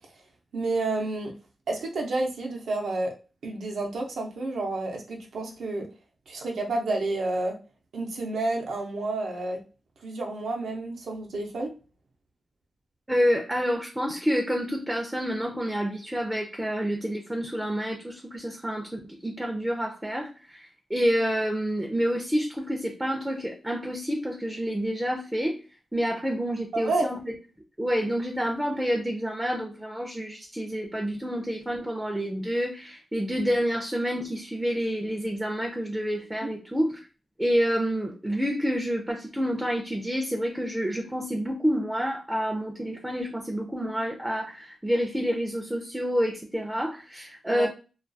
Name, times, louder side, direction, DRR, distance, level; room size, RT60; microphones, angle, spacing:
voice 1, 0.5-1.3 1.7-3.1 3.4-5.9 6.3-7.5 7.9-9.6 10.0-11.7 26.7-27.1 36.4-36.5 47.5-47.7, right 2 dB, 85° right, 0 dB, 0.6 m, -30 dB
voice 2, 13.1-25.6 25.9-27.3 27.8-37.1 37.4-47.7, equal, 5° right, 2 dB, 0.4 m, -28 dB
2.3 x 2.2 x 2.6 m, 0.34 s
wide cardioid pair, 140°, 0 cm